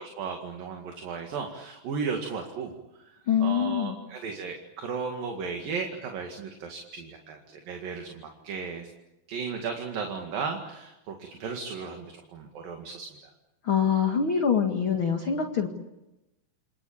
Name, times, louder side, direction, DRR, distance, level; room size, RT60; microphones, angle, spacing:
voice 1, 0.0-7.4 7.7-8.9 9.3-13.3, right 5 dB, 60° right, 3 dB, 3.7 m, -35 dB
voice 2, 3.3-4.0 13.6-15.7, left 7 dB, 40° left, 3 dB, 2.1 m, -24 dB
29.0 x 23.0 x 8.8 m, 0.99 s
omnidirectional pair, 4.6 m